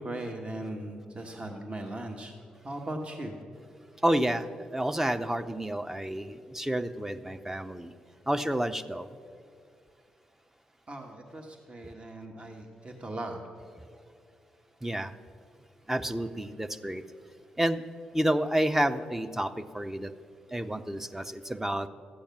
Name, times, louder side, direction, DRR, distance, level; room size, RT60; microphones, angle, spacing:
voice 1, 0.0-2.3 2.6-3.3 10.9-13.4, right 1 dB, 30° right, 2 dB, 1.4 m, -38 dB
voice 2, 4.0-7.9 8.3-9.1 14.8-15.1 15.9-17.0 17.6-17.8 18.1-20.1 20.5-21.9, right 1 dB, 10° right, 9 dB, 0.7 m, -29 dB
13.0 x 8.7 x 5.9 m, 2.3 s
hypercardioid pair, 40°, 4 cm